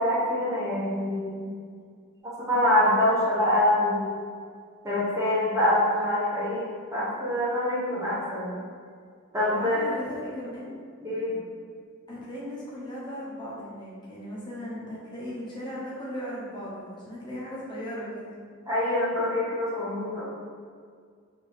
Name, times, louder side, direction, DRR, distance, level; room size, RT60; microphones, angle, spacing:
voice 1, 0.0-1.5 2.4-4.1 4.8-8.6 9.3-9.8 11.0-11.4 18.7-20.2, left 1 dB, 15° right, -8 dB, 0.8 m, -25 dB
voice 2, 9.5-10.7 12.1-18.4, equal, 20° left, -7 dB, 0.8 m, -37 dB
4.4 x 2.6 x 3.3 m, 2.1 s
head